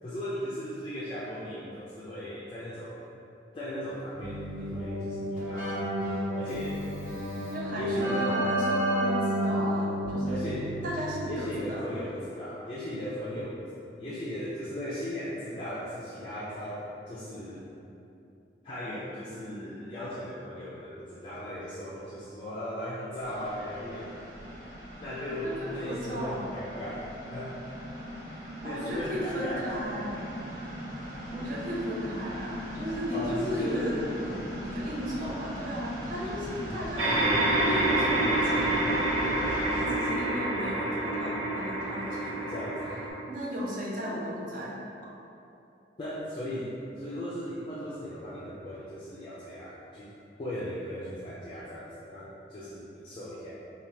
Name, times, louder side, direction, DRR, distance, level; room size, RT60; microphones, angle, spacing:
voice 1, 0.0-2.9 3.5-5.7 6.3-6.8 7.7-8.3 10.3-10.7 11.3-13.7 14.0-17.6 18.6-24.2 25.0-27.0 27.3-27.5 28.4-30.1 33.1-34.0 36.4-37.1 42.5-43.1 46.0-50.1 50.4-53.5, equal, 30° left, -9 dB, 0.3 m, -37 dB
Keyboard (musical), 4.2-11.5, right 1 dB, 10° right, 1.4 m, -31 dB
voice 2, 7.5-10.4 10.8-12.0 25.4-26.5 28.6-30.3 30.9-31.0 31.3-34.0 34.6-37.2 37.7-42.6 43.3-44.8, equal, 50° right, -5 dB, 0.5 m, -35 dB
sound 1, 23.2-39.8, equal, 30° right, 1.3 m, -39 dB
sound 2, 37.0-43.1, right 1 dB, 85° right, 0.7 m, -27 dB
3.2 x 2.2 x 2.7 m, 2.7 s
head